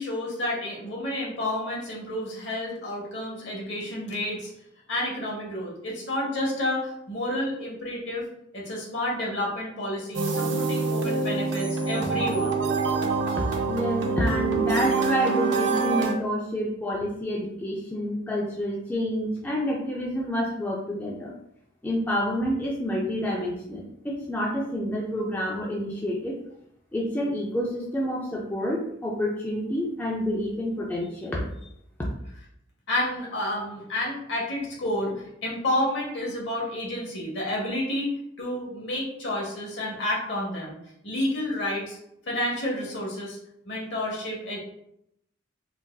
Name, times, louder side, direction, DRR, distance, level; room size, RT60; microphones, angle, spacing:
voice 1, 0.0-4.5 4.9-8.3 8.5-12.5 32.9-40.8 41.0-42.0 42.3-43.4 43.7-44.6, left 1 dB, 60° left, -2 dB, 1.0 m, -30 dB
sound 1, 10.1-16.1, right 4 dB, 65° right, 0.4 m, -26 dB
voice 2, 13.7-21.3 21.8-26.4 26.9-31.5, equal, 10° left, -4 dB, 0.3 m, -28 dB
3.9 x 2.4 x 2.2 m, 0.77 s
head